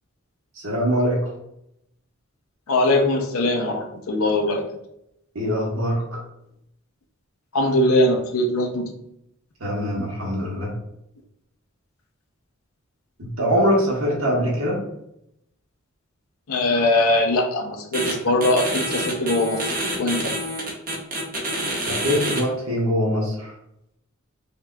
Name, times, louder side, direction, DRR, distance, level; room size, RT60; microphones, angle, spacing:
voice 1, 0.6-1.3 5.3-6.2 9.6-10.7 13.2-14.8 21.8-23.5, equal, 90° right, -3 dB, 1.5 m, -23 dB
voice 2, 2.7-4.6 7.5-8.9 16.5-19.6 20.0-20.3, left 1 dB, 85° left, 3 dB, 0.6 m, -21 dB
sound 1, 17.9-18.1 18.4-22.4, right 1 dB, 45° right, 1.0 m, -27 dB
5.3 x 2.8 x 2.3 m, 0.78 s
head